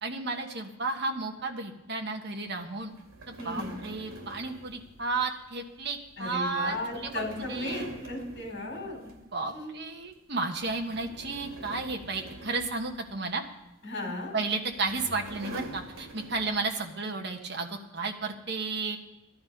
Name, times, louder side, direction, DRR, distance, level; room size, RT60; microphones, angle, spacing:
voice 1, 0.0-2.9 3.3-7.9 9.3-13.4 14.3-19.0, right 3 dB, 50° right, 2 dB, 1.4 m, -33 dB
sound 1, 2.9-9.5 9.8-10.1 10.5-13.5 14.4-16.8, right 1 dB, 75° right, 2.8 m, -45 dB
voice 2, 3.4-3.7 6.2-9.0 9.4-9.7 13.8-14.3, left 2 dB, 55° left, 0 dB, 4.2 m, -36 dB
15.5 x 12.0 x 5.4 m, 0.93 s
head